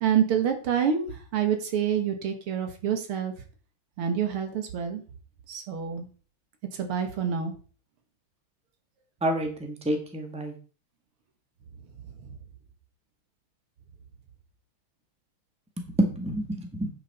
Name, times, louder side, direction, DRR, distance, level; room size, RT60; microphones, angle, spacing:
voice 1, 0.0-3.3 4.0-5.0 5.5-6.1 6.8-7.5, right 8 dB, 90° right, 5 dB, 2.4 m, -27 dB
voice 2, 9.2-10.5 15.8-16.9, right 1 dB, 5° right, 3 dB, 1.2 m, -28 dB
9.5 x 6.2 x 4.2 m, 0.39 s
omnidirectional pair, 2.3 m